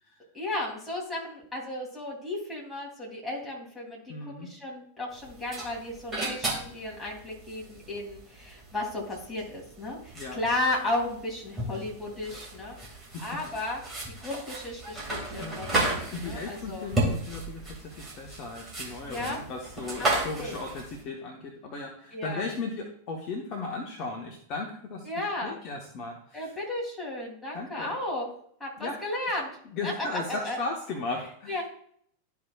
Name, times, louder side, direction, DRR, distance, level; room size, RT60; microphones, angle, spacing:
voice 1, 0.3-12.8 13.2-13.8 14.2-16.9 19.1-19.4 20.0-20.6 22.1-22.5 25.1-25.6 26.3-28.3 28.6-29.5 29.8-30.6 31.5-31.6, left 2 dB, 5° left, -4 dB, 2.8 m, -34 dB
voice 2, 4.1-4.5 10.1-10.4 13.1-13.2 15.4-15.6 16.1-26.5 27.5-27.9 28.8-29.0 29.7-31.6, left 3 dB, 40° left, 1 dB, 1.1 m, -36 dB
sound 1, 5.1-21.0, right 2 dB, 15° right, 2.1 m, -34 dB
12.0 x 4.7 x 2.3 m, 0.64 s
figure-of-eight pair, 90°, 0 cm